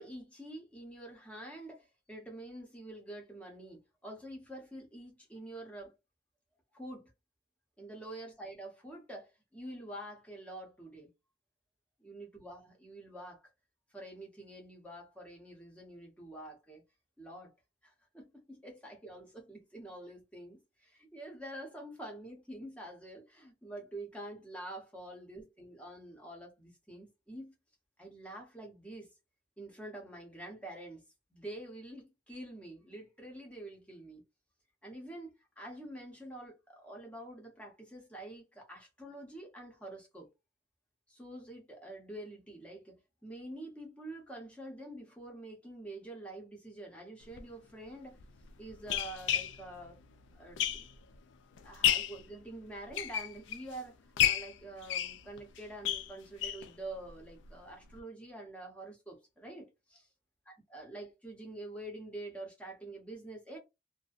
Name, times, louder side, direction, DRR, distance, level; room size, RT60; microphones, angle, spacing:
voice 1, 0.0-5.9 6.7-7.1 7.8-11.1 12.0-13.5 13.9-16.8 17.2-17.5 17.8-27.5 28.0-29.1 29.6-31.0 31.3-34.2 34.8-40.3 41.1-48.2 48.6-50.0 50.3-50.9 51.6-60.1 60.5-63.6, right 1 dB, 5° left, 0.7 m, -47 dB
sound 1, 47.3-47.4 48.2-51.2 51.6-52.2 52.8-53.7 54.2-56.7 57.1-57.2 57.5-57.6 57.9-58.0, left 10 dB, 75° left, 0.3 m, -32 dB
2.5 x 2.1 x 2.4 m
head